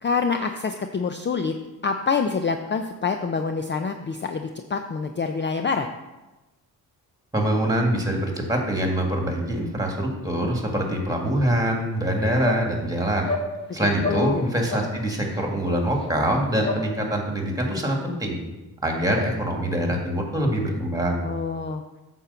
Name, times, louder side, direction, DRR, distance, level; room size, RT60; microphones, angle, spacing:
voice 1, 0.0-1.5 1.8-5.9 13.7-14.5 21.2-21.8, left 5 dB, 30° left, 6 dB, 0.5 m, -26 dB
voice 2, 7.3-13.3 13.7-18.4 18.8-21.3, right 1 dB, 10° right, 1 dB, 2.1 m, -24 dB
sound 1, 12.4-12.6 13.2-13.5 14.0-14.3 14.6-14.9 15.3-15.5 16.0-16.1 16.6-16.8, left 3 dB, 15° left, 1.5 m, -29 dB
8.7 x 4.6 x 6.9 m, 1.1 s
cardioid pair, 90°, 37 cm